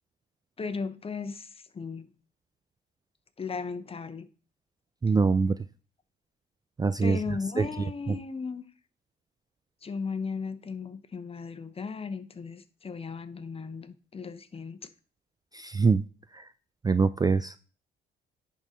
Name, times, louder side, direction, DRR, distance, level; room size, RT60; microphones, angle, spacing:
voice 1, 0.6-2.1 3.4-4.3 7.0-8.6 9.8-14.8, left 5 dB, 30° left, 0.7 m, -36 dB
voice 2, 5.0-5.5 6.8-7.2 7.6-7.7 15.5-16.0 16.4-16.5 16.8-17.6, right 4 dB, 20° right, 0.3 m, -23 dB
10.5 x 3.8 x 4.2 m
cardioid pair, 90°, 20 cm